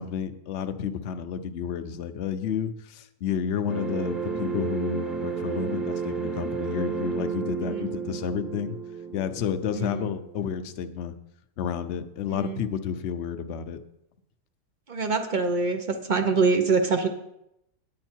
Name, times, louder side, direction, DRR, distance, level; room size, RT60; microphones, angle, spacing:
voice 1, 0.0-8.8 9.1-11.1 11.6-13.8, left 7 dB, 60° left, 9 dB, 0.7 m, -31 dB
sound 1, 3.7-10.7, right 5 dB, ahead, 1.0 m, -32 dB
voice 2, 9.8-10.1 12.3-12.6 14.9-17.1, right 4 dB, 40° right, 6 dB, 0.7 m, -25 dB
9.5 x 8.6 x 4.5 m, 0.82 s
omnidirectional pair, 1.8 m